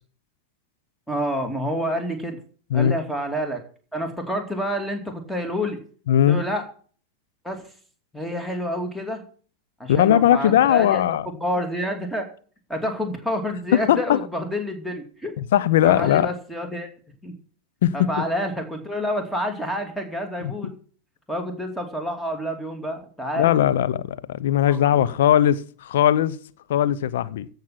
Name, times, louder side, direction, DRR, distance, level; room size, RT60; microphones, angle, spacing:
voice 1, 1.1-2.4 2.7-3.6 3.9-5.8 6.3-6.6 7.4-7.7 8.1-9.2 9.8-11.0 11.4-12.3 12.7-15.3 15.8-16.9 17.2-17.3 17.9-20.7 21.3-23.5 24.7-25.1, equal, 5° left, 2.6 m, -28 dB
voice 2, 6.1-6.4 9.9-11.3 13.7-14.2 15.5-16.3 17.8-18.2 20.4-20.5 23.4-26.4 26.7-27.5, left 11 dB, 55° left, 0.8 m, -19 dB
16.0 x 5.7 x 8.9 m
figure-of-eight pair, 90°, 0 cm